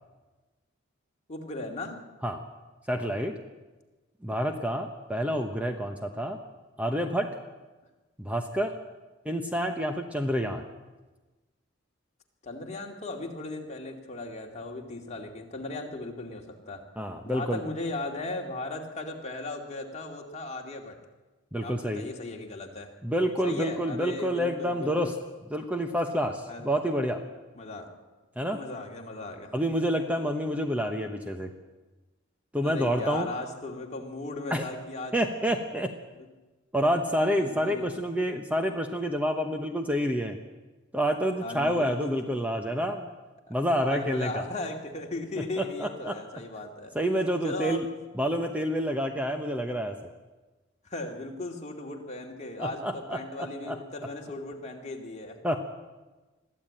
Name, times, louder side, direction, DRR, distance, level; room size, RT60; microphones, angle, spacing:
voice 1, 1.3-2.0 12.4-16.9 17.2-21.0 21.6-22.9 23.4-25.2 26.5-26.7 27.6-27.9 28.5-29.6 32.6-35.2 36.1-36.3 37.4-37.9 41.4-42.2 43.5-43.6 43.8-46.9 47.4-48.0 50.8-55.4, left 2 dB, 35° left, 1 dB, 2.5 m, -37 dB
voice 2, 2.9-3.4 4.2-6.4 6.8-7.4 8.2-8.7 9.2-10.6 17.0-17.6 21.5-22.0 23.0-25.1 25.5-27.2 28.4-28.6 29.5-31.5 32.5-33.3 34.5-34.6 35.1-36.0 36.7-40.4 40.9-43.1 43.5-44.4 45.4-46.2 46.9-47.9 48.1-49.9 52.6-53.8 55.4-55.6, equal, 5° right, 5 dB, 1.0 m, -28 dB
21.5 x 14.0 x 8.8 m, 1.2 s
head